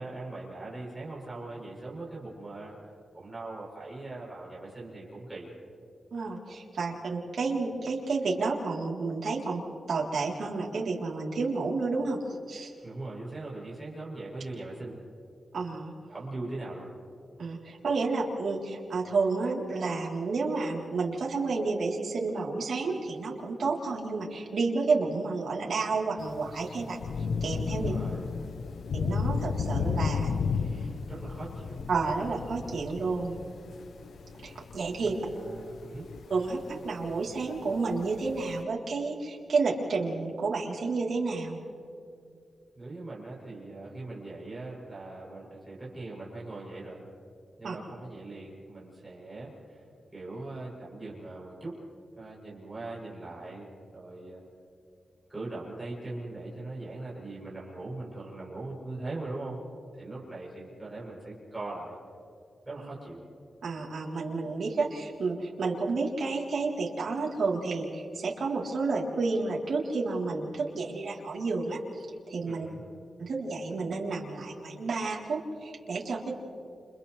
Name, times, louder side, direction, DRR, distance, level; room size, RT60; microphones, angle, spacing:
voice 1, 0.0-2.8 3.1-5.5 12.8-15.0 16.1-16.9 27.6-28.2 31.1-31.9 35.0-36.1 42.8-47.0 47.6-49.8 50.1-51.8 52.2-54.4 55.3-59.6 59.9-62.0 62.6-63.2 72.5-72.8, right 2 dB, 15° right, -6 dB, 8.0 m, -40 dB
voice 2, 6.1-9.6 9.9-12.2 12.5-12.7 15.5-15.9 17.4-27.0 27.4-27.9 29.0-30.3 30.8-30.9 31.9-33.4 34.4-35.2 36.3-41.6 47.6-47.8 62.8-62.9 63.6-72.7 73.2-76.3, right 3 dB, 70° right, -3 dB, 3.6 m, -30 dB
Thunder / Rain, 26.2-38.6, left 5 dB, 80° left, 0.7 m, -34 dB
30.0 x 29.5 x 3.4 m, 2.4 s
wide cardioid pair, 150°, 0 cm